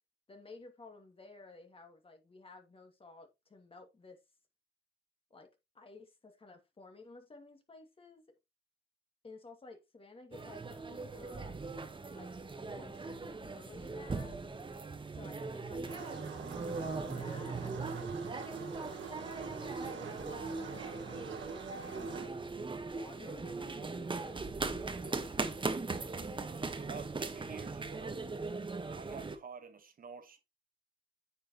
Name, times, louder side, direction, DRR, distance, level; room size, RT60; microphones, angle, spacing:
voice 1, 0.3-4.2 5.3-5.5 5.7-8.2 9.2-11.6 12.1-12.3 12.6-14.6 15.1-18.1 18.5-21.2 21.5-22.4 22.8-25.6, left 3 dB, 30° left, 2.4 m, -55 dB
sound 1, 10.3-29.4, right 3 dB, 25° right, 1.4 m, -40 dB
sound 2, 15.9-22.3, right 6 dB, 70° right, 1.7 m, -46 dB
voice 2, 26.8-28.2 28.8-30.4, right 6 dB, 45° right, 1.3 m, -49 dB
9.5 x 6.8 x 3.1 m
cardioid pair, 90°, 20 cm